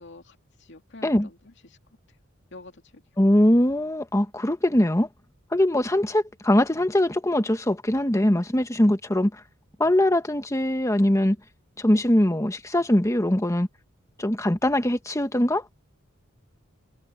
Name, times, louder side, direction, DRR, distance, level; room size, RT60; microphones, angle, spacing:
voice 1, 0.0-1.8 2.1-2.2 2.5-3.0, left 2 dB, 60° left, 2.4 m, -48 dB
voice 2, 3.2-5.1 5.5-9.4 9.8-11.4 11.8-13.7 14.2-15.6, left 1 dB, 15° left, 1.3 m, -22 dB
head